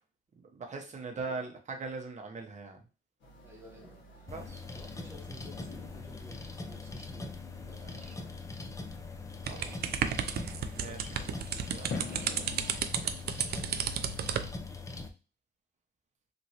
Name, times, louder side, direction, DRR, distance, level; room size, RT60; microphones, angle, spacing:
voice 1, 0.5-2.8 4.3-4.6 8.1-8.2 9.5-9.9 10.8-11.3 11.7-11.9 12.2-12.4, right 4 dB, 35° right, 3 dB, 0.8 m, -41 dB
voice 2, 1.1-1.5 3.4-4.3 4.7-7.4 7.7-8.4 9.3-10.5 11.1-11.4, right 1 dB, 10° right, -4 dB, 1.1 m, -54 dB
sound 1, 3.2-12.8, left 3 dB, 65° left, 1.1 m, -48 dB
sound 2, 4.3-15.1, left 3 dB, 15° left, 0.4 m, -42 dB
sound 3, 9.5-14.5, right 8 dB, 55° right, 0.4 m, -33 dB
3.0 x 2.5 x 2.8 m, 0.33 s
cardioid pair, 90°, 20 cm